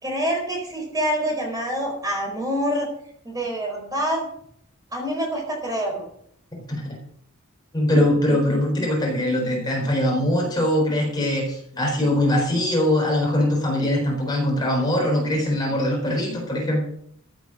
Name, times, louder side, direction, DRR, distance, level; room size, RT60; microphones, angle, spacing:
voice 1, 0.0-2.9 3.2-4.2 4.9-6.0, equal, 15° right, 0 dB, 4.6 m, -26 dB
voice 2, 7.7-16.8, left 1 dB, 20° left, -1 dB, 4.1 m, -22 dB
15.5 x 8.3 x 6.1 m, 0.67 s
head